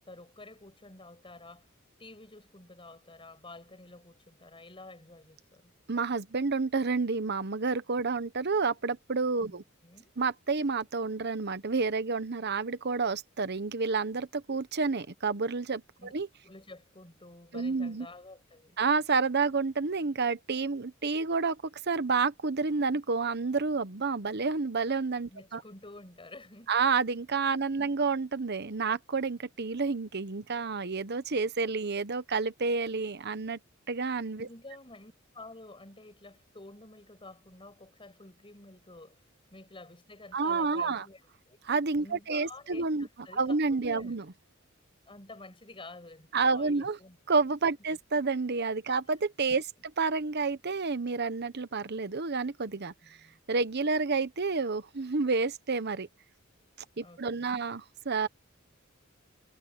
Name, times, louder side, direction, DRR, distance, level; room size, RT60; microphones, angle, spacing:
voice 1, 0.0-1.7 2.0-5.7 9.5-10.1 16.0-16.1 16.4-18.8 25.3-26.7 27.5-27.9 34.4-39.2 39.5-41.2 41.5-41.6 42.0-44.2 45.1-47.2 48.9-49.0 49.5-49.6 53.0-53.4 56.9-57.6, left 2 dB, 25° left, 7.3 m, -50 dB
voice 2, 5.9-9.6 10.2-15.8 16.1-16.3 17.5-18.1 18.8-21.6 21.9-25.6 26.7-33.6 33.9-34.5 40.3-41.1 41.6-43.1 43.4-44.3 46.3-47.0 47.3-49.7 50.0-52.9 53.5-56.1 57.0-58.3, right 4 dB, 55° right, 1.0 m, -29 dB
head